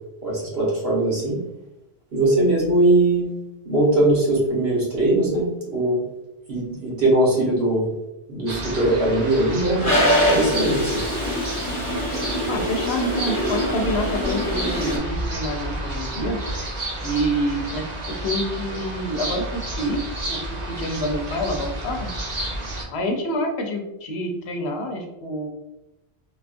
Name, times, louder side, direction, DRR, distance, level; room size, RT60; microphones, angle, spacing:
voice 1, 0.2-1.4 2.1-3.3 3.6-5.4 5.7-6.0 6.5-7.9 8.3-9.9 10.2-11.0, right 1 dB, 75° right, -6 dB, 1.5 m, -20 dB
southcarolina welcomecenternorth, 8.5-22.8, right 1 dB, 45° right, 0.7 m, -31 dB
Toilet flush, 9.8-15.0, equal, 55° left, 1.2 m, -24 dB
voice 2, 12.5-16.4 17.0-17.9 18.2-20.0 20.3-20.4 20.7-22.1 22.9-25.5, equal, 85° left, 3 dB, 0.9 m, -27 dB
3.6 x 2.3 x 2.5 m, 0.93 s
omnidirectional pair, 1.0 m